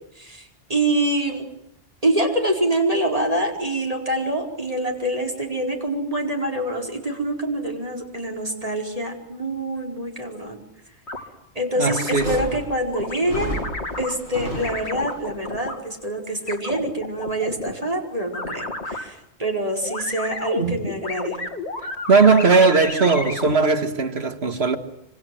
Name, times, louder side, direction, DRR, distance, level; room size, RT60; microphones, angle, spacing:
voice 1, 0.1-1.5 2.0-10.6 11.5-13.6 14.0-21.4, right 1 dB, 35° right, 4.9 m, -25 dB
sound 1, 11.1-11.2 11.8-12.4 12.9-14.1 14.6-15.8 16.5-17.7 18.3-19.0 19.8-23.6, left 2 dB, 80° left, 3.1 m, -31 dB
voice 2, 11.8-12.3 20.6-20.8 22.1-24.8, right 4 dB, 70° right, 2.0 m, -18 dB
sound 2, 12.0-15.3, equal, 55° left, 7.7 m, -32 dB
26.5 x 25.5 x 7.8 m
omnidirectional pair, 1.1 m